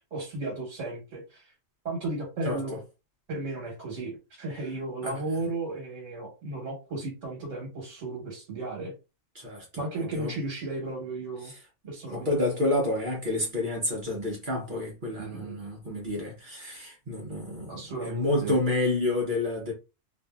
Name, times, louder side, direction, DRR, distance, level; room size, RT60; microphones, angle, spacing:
voice 1, 0.1-1.5 1.8-2.8 3.3-8.9 9.8-11.5 11.9-12.3 15.2-15.5 17.7-18.6, right 2 dB, 75° right, 1.4 m, -34 dB
voice 2, 9.3-10.3 12.1-19.7, left 2 dB, 45° right, 0.9 m, -29 dB
2.6 x 2.6 x 2.3 m
omnidirectional pair, 1.3 m